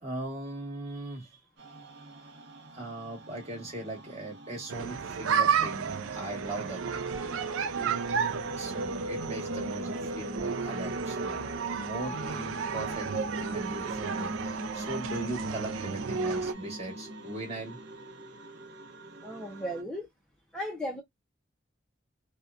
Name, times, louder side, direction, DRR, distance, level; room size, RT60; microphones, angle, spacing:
voice 1, 0.0-1.4 2.7-6.8 7.8-8.2 8.5-11.4 11.7-13.1 13.4-17.8, right 2 dB, 30° right, 1.2 m, -39 dB
sound 1, 1.6-19.8, right 1 dB, 60° right, 0.8 m, -41 dB
sound 2, 4.7-16.5, right 6 dB, 80° right, 0.4 m, -32 dB
voice 2, 19.2-20.1 20.5-21.0, equal, 5° left, 0.5 m, -35 dB
2.7 x 2.2 x 2.3 m
head